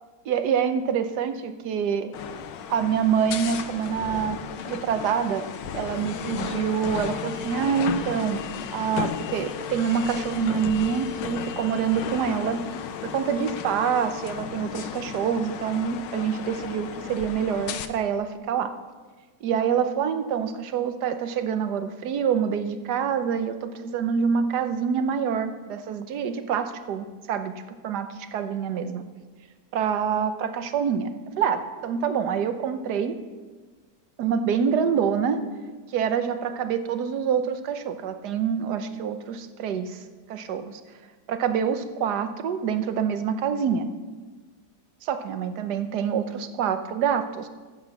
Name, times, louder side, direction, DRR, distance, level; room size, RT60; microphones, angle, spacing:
voice 1, 0.2-2.1 2.7-4.4 4.7-5.5 5.7-8.4 8.7-12.6 13.0-18.7 19.4-29.0 29.7-31.1 31.4-33.1 34.2-35.4 35.9-40.0 40.3-40.8 41.3-43.9 45.0-47.5, right 7 dB, 65° right, 9 dB, 1.4 m, -26 dB
sound 1, 2.1-17.9, left 8 dB, 80° left, 1.4 m, -34 dB
14.0 x 7.9 x 7.1 m, 1.4 s
omnidirectional pair, 1.9 m